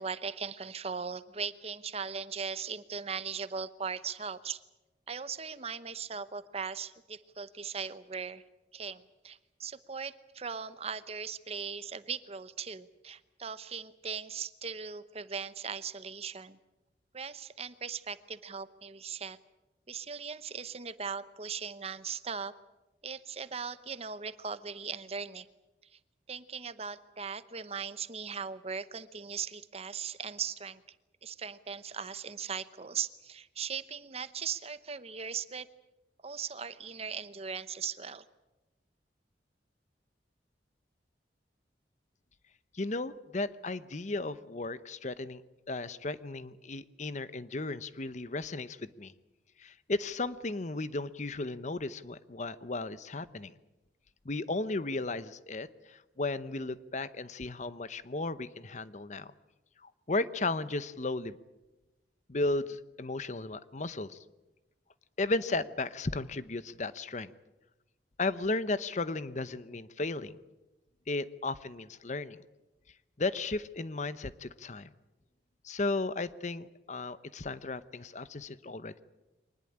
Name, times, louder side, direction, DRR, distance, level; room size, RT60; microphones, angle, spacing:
voice 1, 0.0-4.6 5.1-8.4 8.7-16.6 17.1-19.4 19.9-22.5 23.0-25.5 25.9-26.0 26.3-31.0 31.2-35.7 36.2-38.2, right 6 dB, 35° right, 14 dB, 0.9 m, -39 dB
voice 2, 42.7-45.4 45.7-49.1 49.6-53.5 54.2-59.3 59.8-61.4 62.3-64.2 65.2-67.3 68.2-70.4 71.1-72.4 73.2-74.9 75.6-79.0, left 2 dB, 40° left, 15 dB, 0.8 m, -35 dB
24.0 x 20.0 x 8.6 m, 1.0 s
head